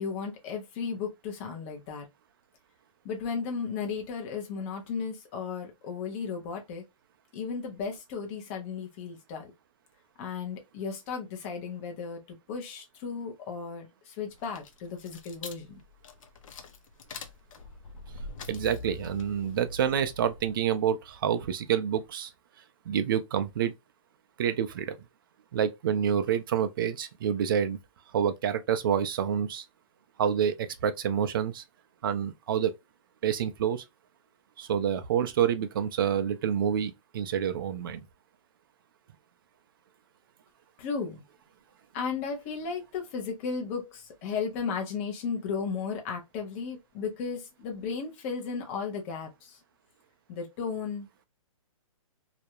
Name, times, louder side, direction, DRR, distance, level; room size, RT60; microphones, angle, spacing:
voice 1, 0.0-2.1 3.0-6.8 7.3-9.5 10.2-15.8 40.8-41.2 41.9-49.6 50.3-51.1, left 5 dB, 20° left, 0.5 m, -35 dB
sound 1, 14.3-20.9, left 2 dB, 65° left, 0.5 m, -44 dB
voice 2, 18.5-22.3 22.9-23.7 24.4-25.0 25.5-27.8 28.1-29.6 30.2-31.6 32.0-32.7 33.2-33.8 34.6-38.0, right 8 dB, 40° right, 0.4 m, -28 dB
2.3 x 2.0 x 2.8 m
hypercardioid pair, 160°, 18 cm